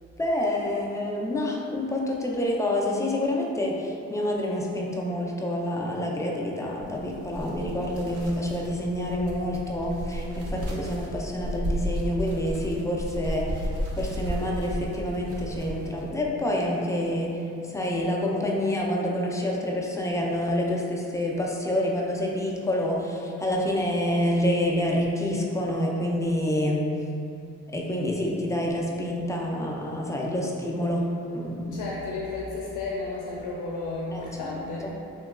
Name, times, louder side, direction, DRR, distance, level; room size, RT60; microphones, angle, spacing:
voice 1, 0.2-13.7 14.0-17.4 17.7-26.8 27.7-31.1 31.3-31.9 34.1-34.6, left 1 dB, 10° left, -2 dB, 0.3 m, -27 dB
sound 1, 6.8-16.1, equal, 55° right, 0.6 m, -33 dB
voice 2, 31.7-34.8, left 3 dB, 85° left, -4 dB, 0.5 m, -33 dB
3.0 x 2.8 x 2.3 m, 2.7 s
cardioid pair, 90°, 30 cm